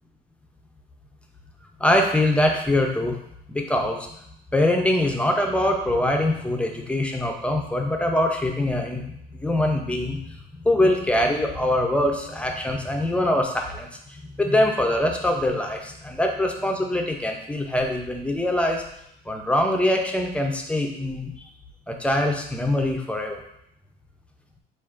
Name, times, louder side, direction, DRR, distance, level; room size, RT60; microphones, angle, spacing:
voice 1, 1.8-3.2 3.5-4.1 4.5-9.0 9.4-10.2 10.5-18.8 19.3-21.3 21.9-23.4, left 1 dB, 5° left, 2 dB, 0.6 m, -23 dB
7.0 x 2.5 x 2.5 m, 0.76 s
cardioid pair, 110°, 17 cm